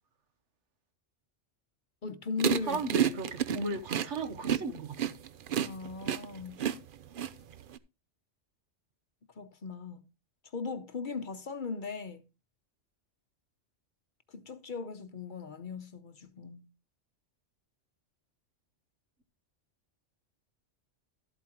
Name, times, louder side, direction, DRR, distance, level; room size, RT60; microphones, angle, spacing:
voice 1, 2.0-2.8 3.5-3.6 5.6-6.6 9.3-10.1 10.5-12.2 14.3-16.7, left 4 dB, 45° left, 0.9 m, -38 dB
sound 1, 2.4-7.8, right 9 dB, 55° right, 0.7 m, -30 dB
voice 2, 2.7-5.1, right 3 dB, 70° right, 1.4 m, -36 dB
12.5 x 8.5 x 2.9 m
omnidirectional pair, 1.3 m